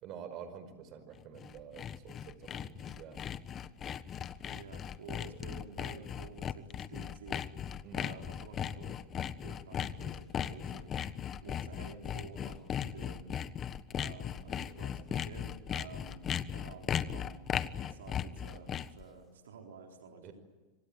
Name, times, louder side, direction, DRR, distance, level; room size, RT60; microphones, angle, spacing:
voice 1, 0.0-3.2 7.8-8.1 12.7-13.0 20.2-20.3, right 7 dB, 45° right, 11 dB, 5.0 m, -48 dB
Sawing, 1.2-19.0, left 9 dB, 30° left, 1.2 m, -37 dB
voice 2, 4.5-7.6 7.9-9.1 9.4-13.7 13.9-16.2 16.5-20.3, right 5 dB, 85° right, 3 dB, 4.1 m, -51 dB
26.0 x 25.5 x 8.8 m, 1.2 s
hypercardioid pair, 110°, 0 cm